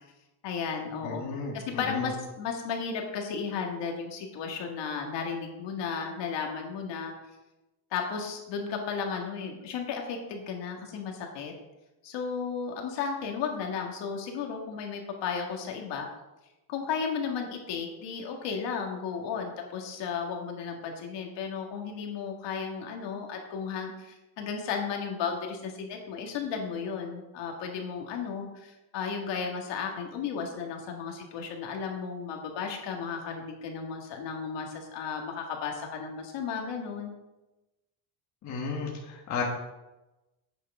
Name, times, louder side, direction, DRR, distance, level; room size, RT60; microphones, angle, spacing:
voice 1, 0.4-1.2 1.5-7.1 7.9-11.5 12.0-16.1 16.7-37.1, left 6 dB, 60° left, 1 dB, 1.8 m, -34 dB
voice 2, 1.0-2.1 38.4-39.4, left 4 dB, 35° left, -1 dB, 1.4 m, -34 dB
8.6 x 6.5 x 4.8 m, 1.0 s
cardioid pair, 165°, 48 cm